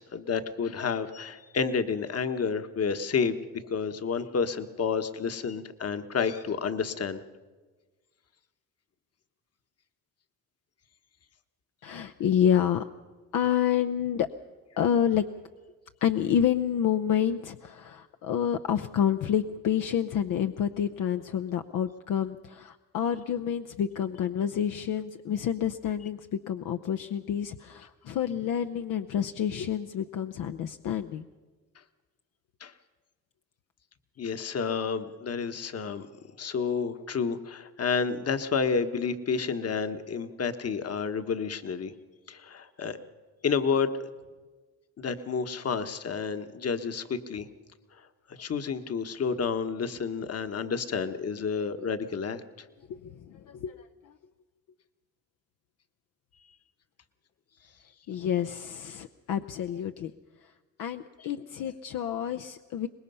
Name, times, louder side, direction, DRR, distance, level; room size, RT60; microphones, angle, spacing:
voice 1, 0.0-7.2 32.6-32.7 34.2-36.1 36.4-41.9 42.3-43.0 43.4-43.9 45.0-47.5 48.3-52.4, left 5 dB, 45° left, 9 dB, 1.4 m, -30 dB
voice 2, 11.8-12.9 13.3-14.3 14.8-15.2 16.0-31.3 52.9-54.1 58.1-60.1 60.4-60.5 60.8-62.9, left 9 dB, 70° left, 8 dB, 0.8 m, -28 dB
24.0 x 20.0 x 5.6 m, 1.3 s
cardioid pair, 75°, 33 cm